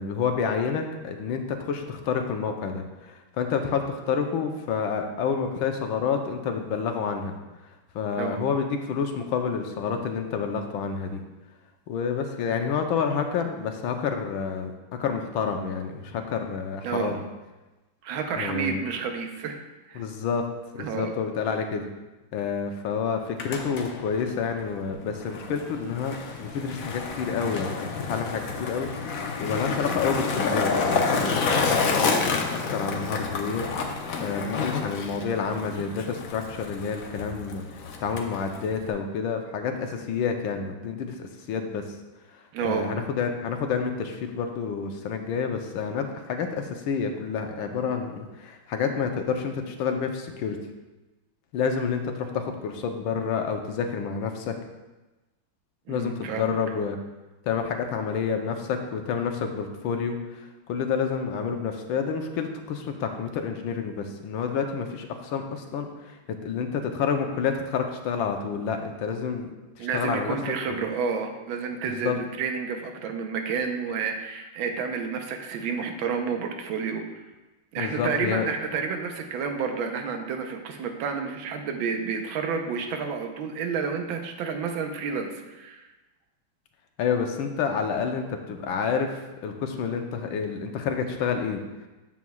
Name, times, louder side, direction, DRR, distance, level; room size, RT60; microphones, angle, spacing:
voice 1, 0.0-7.4 7.9-11.2 11.9-17.2 18.3-18.8 19.9-20.4 20.7-21.9 22.3-37.6 38.0-41.9 42.3-50.6 51.5-54.6 55.9-57.0 57.4-69.5 69.8-70.4 70.7-70.8 71.9-72.2 77.8-78.5 87.0-91.6, left 6 dB, 80° left, 5 dB, 1.5 m, -29 dB
voice 2, 8.1-8.5 16.8-17.2 18.0-19.6 19.9-20.1 20.8-21.1 42.5-42.9 55.9-56.5 69.8-77.0 77.7-85.9, right 5 dB, 75° right, 4 dB, 1.5 m, -30 dB
Skateboard, 23.2-38.9, left 4 dB, 65° left, 0.9 m, -29 dB
9.3 x 7.1 x 2.3 m, 1.1 s
omnidirectional pair, 2.2 m